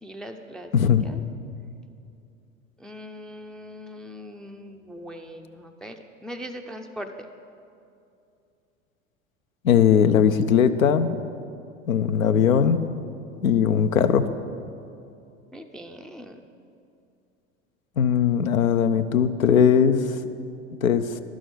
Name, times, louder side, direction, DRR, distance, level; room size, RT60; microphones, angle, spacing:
voice 1, 0.0-0.7 1.0-1.2 2.8-7.1 15.5-16.4, equal, ahead, 4 dB, 0.4 m, -40 dB
voice 2, 0.7-1.1 9.6-11.2 11.9-12.9 13.4-14.3 18.0-20.2 20.8-21.2, left 7 dB, 85° left, 10 dB, 0.6 m, -19 dB
11.5 x 6.3 x 7.8 m, 2.6 s
figure-of-eight pair, 75°, 40 cm